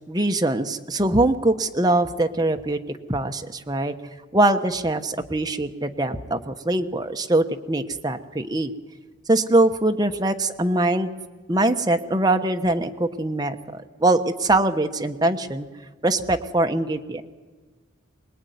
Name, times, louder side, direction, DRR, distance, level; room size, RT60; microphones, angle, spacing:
voice 1, 0.1-2.8 3.1-3.9 4.3-8.7 9.3-11.1 11.5-15.7 16.0-17.2, right 2 dB, 20° right, 6 dB, 1.1 m, -22 dB
24.0 x 20.0 x 9.4 m, 1.4 s
head